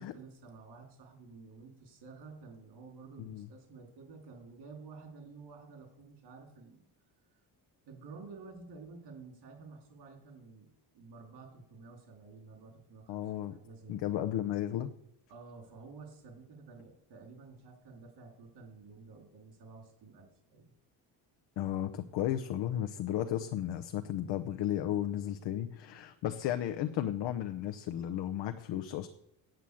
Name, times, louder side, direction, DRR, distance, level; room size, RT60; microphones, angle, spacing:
voice 1, 0.0-6.8 7.9-14.2 15.3-20.7, right 4 dB, 70° right, 2 dB, 4.0 m, -51 dB
voice 2, 13.1-13.5 13.9-14.9 21.6-29.1, left 11 dB, 75° left, 7 dB, 0.9 m, -34 dB
9.1 x 7.7 x 8.5 m, 0.78 s
cardioid pair, 165°, 42 cm